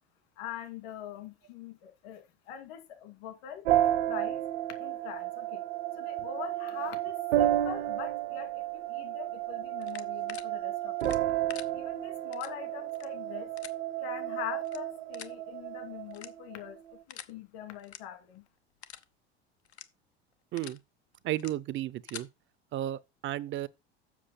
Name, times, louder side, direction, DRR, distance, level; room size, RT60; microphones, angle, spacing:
voice 1, 0.4-3.6 4.1-4.4 4.8-5.6 6.0-11.3 11.7-13.5 14.0-18.4, left 10 dB, 65° left, 2.6 m, -43 dB
sound 1, 3.7-16.9, right 13 dB, 75° right, 0.9 m, -32 dB
sound 2, 9.8-10.4 11.0-11.7 12.3-12.5 12.9-13.1 13.6-13.7 14.6-14.8 15.1-15.3 16.1-16.6 17.1-17.3 17.8-18.0 18.3-18.5 18.8-19.0 19.6-19.9 20.3-20.8 21.3-21.5 21.9-22.3, left 10 dB, 85° left, 0.9 m, -45 dB
voice 2, 21.2-22.3 22.7-23.7, right 13 dB, 40° right, 0.5 m, -33 dB
7.5 x 6.2 x 5.5 m
hypercardioid pair, 75°, 32 cm